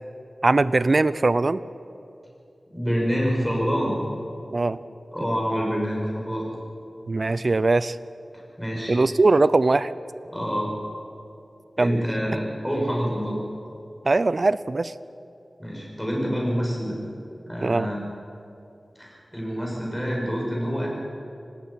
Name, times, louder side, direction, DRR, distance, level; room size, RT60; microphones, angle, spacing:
voice 1, 0.4-1.6 4.5-4.8 7.1-8.0 8.9-9.9 11.8-12.0 14.0-14.9 17.6-17.9, right 3 dB, 50° right, 16 dB, 0.6 m, -21 dB
voice 2, 2.7-3.9 5.1-6.5 8.6-9.0 10.3-10.7 11.8-13.4 15.6-17.0 17.5-18.1 19.0-20.9, equal, 5° left, -3 dB, 7.0 m, -26 dB
26.0 x 19.0 x 5.9 m, 2.7 s
wide cardioid pair, 60°, 0 cm